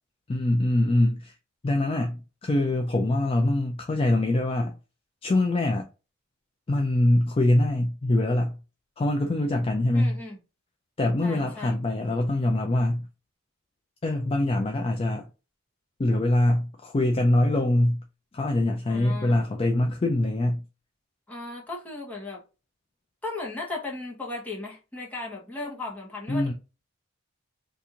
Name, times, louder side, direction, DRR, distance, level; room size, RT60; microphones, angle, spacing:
voice 1, 0.3-1.4 1.6-4.8 5.2-5.9 6.7-8.6 9.0-10.2 11.0-13.1 14.0-15.3 16.0-18.0 18.3-20.6 26.3-26.5, left 1 dB, 25° left, 0.3 m, -24 dB
voice 2, 9.9-10.4 11.2-11.8 18.9-19.4 21.3-22.4 23.2-26.5, left 2 dB, 5° left, 0.9 m, -36 dB
2.8 x 2.5 x 3.6 m
head